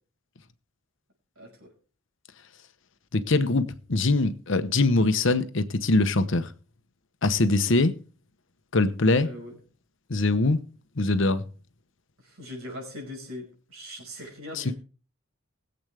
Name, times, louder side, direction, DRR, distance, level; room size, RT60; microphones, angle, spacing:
voice 1, 1.4-1.7 7.6-7.8 9.2-9.6 12.2-14.7, left 1 dB, 85° right, 5.5 m, -41 dB
voice 2, 3.1-6.5 7.2-7.9 8.7-9.3 10.1-10.6 11.0-11.4 14.5-14.7, left 2 dB, 60° left, 0.9 m, -23 dB
21.0 x 7.9 x 3.4 m
head